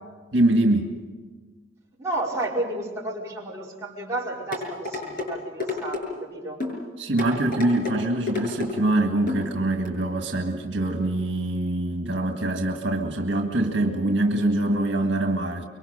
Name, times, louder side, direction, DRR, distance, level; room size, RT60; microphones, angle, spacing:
voice 1, 0.3-0.9 7.0-15.7, right 1 dB, 70° right, 4 dB, 1.9 m, -24 dB
voice 2, 2.0-6.6, right 2 dB, 15° right, -5 dB, 4.9 m, -31 dB
sound 1, 4.5-5.3 5.6-6.0 6.6-6.8 7.2-8.0 8.3-8.7 9.3-9.4 9.8-9.9, left 3 dB, 50° left, 6.9 m, -29 dB
25.0 x 23.5 x 6.7 m, 1.4 s
head